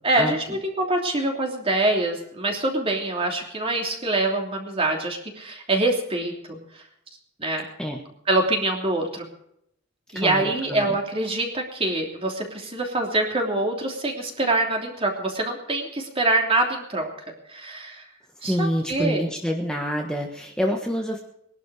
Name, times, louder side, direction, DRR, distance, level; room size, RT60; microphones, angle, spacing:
voice 1, 0.0-6.6 7.4-7.6 8.3-9.2 10.1-17.1 17.5-18.0 18.4-19.2, right 2 dB, 30° right, 1 dB, 3.1 m, -25 dB
voice 2, 10.1-11.0 18.4-21.2, equal, 5° left, 0 dB, 1.4 m, -27 dB
21.0 x 11.5 x 4.9 m, 0.75 s
head